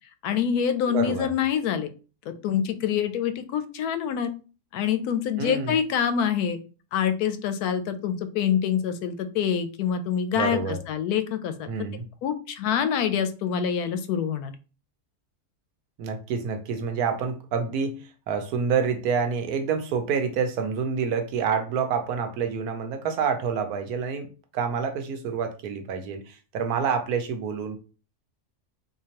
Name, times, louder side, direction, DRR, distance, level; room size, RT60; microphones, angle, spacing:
voice 1, 0.2-1.9 2.3-4.3 4.7-6.6 6.9-11.7 12.2-14.5, left 8 dB, 85° left, 10 dB, 1.1 m, -26 dB
voice 2, 0.9-1.3 5.4-5.8 10.3-10.8 11.7-12.0 16.0-24.3 24.5-27.8, right 6 dB, 85° right, 6 dB, 1.2 m, -27 dB
3.7 x 2.9 x 2.8 m, 0.34 s
omnidirectional pair, 1.6 m